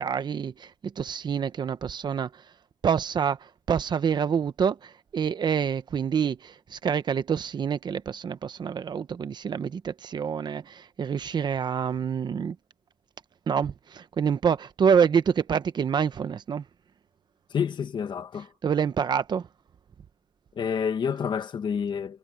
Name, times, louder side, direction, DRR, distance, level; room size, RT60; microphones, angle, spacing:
voice 1, 0.0-2.4 2.8-12.6 13.5-16.6 18.6-19.5, right 7 dB, 70° right, 0.9 m, -27 dB
voice 2, 17.5-18.5 20.5-22.2, left 7 dB, 80° left, 1.5 m, -28 dB
wide cardioid pair, 130°, 8 cm